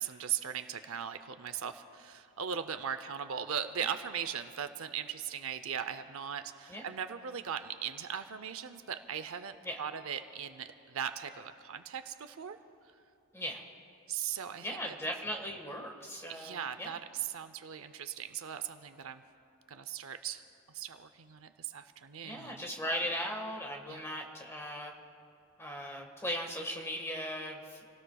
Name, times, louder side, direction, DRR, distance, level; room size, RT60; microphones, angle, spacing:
voice 1, 0.0-12.6 14.1-14.7 16.3-19.2 19.7-20.4 20.7-22.7 23.9-24.0, right 8 dB, 65° right, 10 dB, 0.6 m, -39 dB
voice 2, 14.6-17.0 22.2-24.9 25.6-27.8, equal, 10° left, 2 dB, 1.5 m, -38 dB
28.5 x 18.0 x 2.3 m, 2.7 s
head